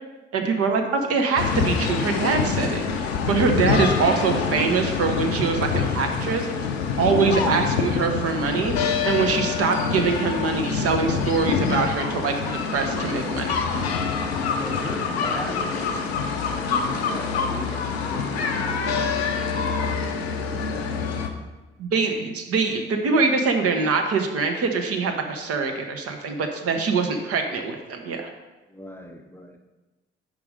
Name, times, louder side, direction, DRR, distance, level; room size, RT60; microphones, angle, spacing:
voice 1, 0.3-6.5 7.0-8.7 9.1-13.6 21.8-28.3, right 4 dB, 50° right, 4 dB, 0.9 m, -24 dB
sound 1, 1.4-21.3, left 5 dB, 80° left, 0.6 m, -26 dB
voice 2, 14.5-15.7 16.5-19.1 19.6-19.9 20.4-21.3 26.7-27.1 28.7-29.6, left 1 dB, 5° left, 2 dB, 0.7 m, -38 dB
5.1 x 4.8 x 5.0 m, 1.1 s
figure-of-eight pair, 45°, 31 cm